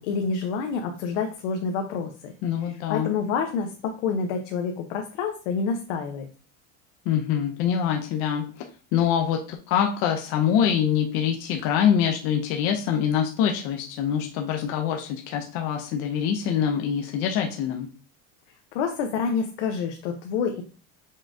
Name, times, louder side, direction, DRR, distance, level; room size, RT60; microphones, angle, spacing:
voice 1, 0.0-2.3 2.6-6.3 18.7-20.6, left 5 dB, 85° left, 4 dB, 0.8 m, -28 dB
voice 2, 2.4-3.1 7.1-8.4 8.9-17.9, left 8 dB, 45° left, 3 dB, 0.5 m, -24 dB
5.5 x 3.6 x 2.5 m, 0.37 s
cardioid pair, 175°, 35 cm